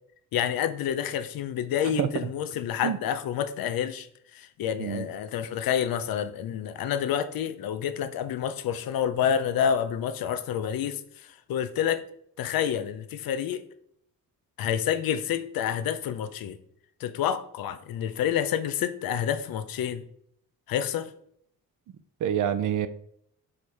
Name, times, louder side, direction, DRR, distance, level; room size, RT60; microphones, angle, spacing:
voice 1, 0.3-4.1 4.3-12.0 12.4-13.6 14.6-16.6 17.0-20.0 20.7-21.1, left 9 dB, 85° left, 0.7 m, -28 dB
voice 2, 22.2-22.9, right 10 dB, 60° right, 0.6 m, -26 dB
5.0 x 4.4 x 4.8 m
cardioid pair, 155°, 34 cm